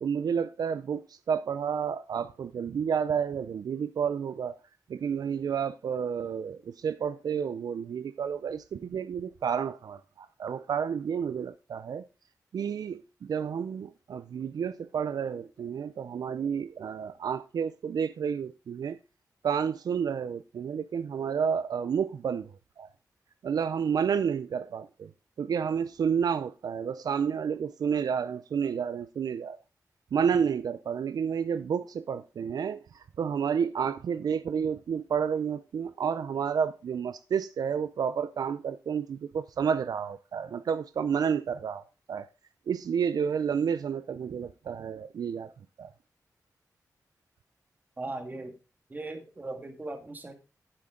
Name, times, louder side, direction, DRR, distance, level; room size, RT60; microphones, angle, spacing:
voice 1, 0.0-4.5 4.9-12.0 12.5-19.0 19.4-22.9 23.4-25.1 25.4-29.6 30.1-42.3 42.7-45.5 45.8-45.9, right 7 dB, 85° right, 0.4 m, -30 dB
voice 2, 48.0-48.6 48.9-50.3, right 2 dB, 30° right, 1.8 m, -38 dB
9.8 x 7.7 x 3.7 m
wide cardioid pair, 120°, 6 cm